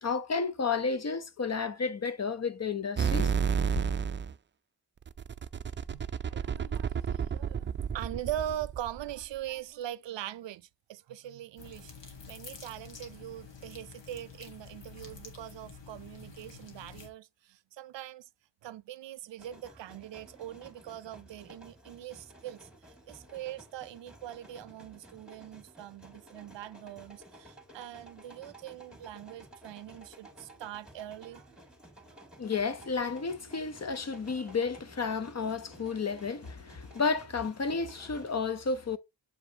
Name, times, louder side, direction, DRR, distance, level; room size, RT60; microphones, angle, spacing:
voice 1, 0.0-3.3 32.4-39.0, left 5 dB, 40° left, 0.8 m, -32 dB
sound 1, 3.0-4.3 5.0-9.2, right 6 dB, 30° right, 0.4 m, -31 dB
voice 2, 5.9-11.9 12.3-18.3 18.6-31.5, right 12 dB, 90° right, 0.5 m, -42 dB
sound 2, 11.6-17.1, left 5 dB, 85° left, 1.7 m, -49 dB
sound 3, 19.4-38.4, right 1 dB, ahead, 2.6 m, -54 dB
7.5 x 5.0 x 2.8 m
cardioid pair, 80°, 42 cm